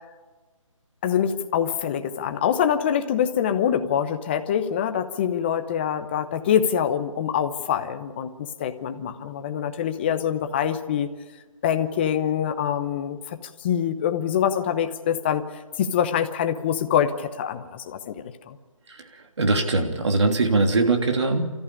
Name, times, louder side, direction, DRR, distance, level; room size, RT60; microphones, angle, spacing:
voice 1, 1.0-8.3 8.6-11.1 11.6-15.4 15.8-18.1 18.5-18.6, left 9 dB, 20° left, 8 dB, 0.9 m, -25 dB
voice 2, 18.9-21.5, right 3 dB, 55° right, 3 dB, 3.1 m, -22 dB
29.0 x 14.5 x 8.6 m, 1.3 s
figure-of-eight pair, 160°, 17 cm